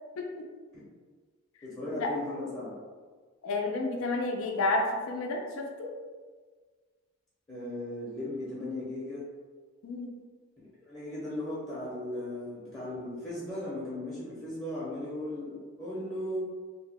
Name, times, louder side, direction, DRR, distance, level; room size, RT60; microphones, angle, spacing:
voice 1, 1.6-2.7 7.5-9.2 10.8-16.4, left 1 dB, 15° left, -9 dB, 0.7 m, -37 dB
voice 2, 3.4-5.9 9.8-10.1, left 2 dB, 65° left, 1 dB, 0.4 m, -31 dB
2.8 x 2.2 x 3.3 m, 1.5 s
head